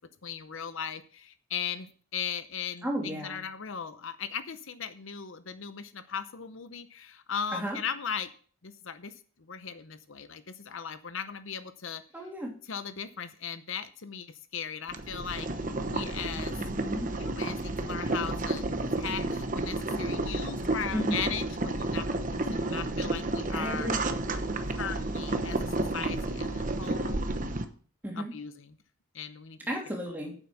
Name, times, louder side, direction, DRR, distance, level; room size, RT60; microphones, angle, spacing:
voice 1, 0.2-8.3 8.6-9.1 9.5-12.0 12.7-16.6 17.2-23.9 24.7-27.2 28.2-28.8 29.1-29.6 29.9-30.0, left 7 dB, 65° left, 11 dB, 0.8 m, -38 dB
voice 2, 2.8-3.4 7.5-7.8 12.1-12.5 16.6-17.1 20.9-21.2 23.5-24.0 28.0-28.3 29.7-30.3, equal, 10° right, -1 dB, 2.8 m, -33 dB
Boiling, 14.9-27.6, right 2 dB, 40° right, 0.9 m, -31 dB
9.1 x 7.7 x 6.0 m, 0.43 s
head